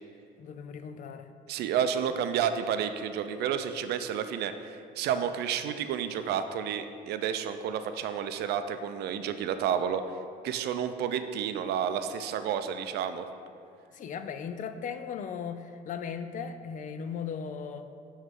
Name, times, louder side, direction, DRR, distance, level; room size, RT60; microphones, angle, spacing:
voice 1, 0.4-1.3 13.9-17.9, left 6 dB, 50° left, 9 dB, 0.5 m, -37 dB
voice 2, 1.5-10.0 10.4-13.3, right 8 dB, 75° right, 9 dB, 0.5 m, -30 dB
9.4 x 3.2 x 5.3 m, 2.4 s
cardioid pair, 110°, 17 cm